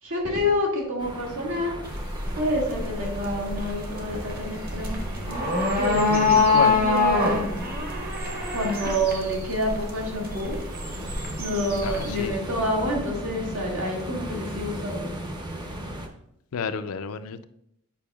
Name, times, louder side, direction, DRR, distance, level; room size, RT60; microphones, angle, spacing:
voice 1, 0.0-1.8 2.4-5.0 5.8-7.6 8.5-10.6 11.4-15.1, left 1 dB, 85° right, -2 dB, 1.8 m, -28 dB
sound 1, 1.0-16.1, right 1 dB, 20° right, 0.6 m, -37 dB
sound 2, 1.8-12.3, left 3 dB, 45° right, 1.1 m, -26 dB
voice 2, 5.9-6.8 11.8-12.3 16.5-17.4, left 6 dB, 85° left, 11 dB, 0.4 m, -30 dB
8.5 x 5.2 x 2.3 m, 0.76 s
head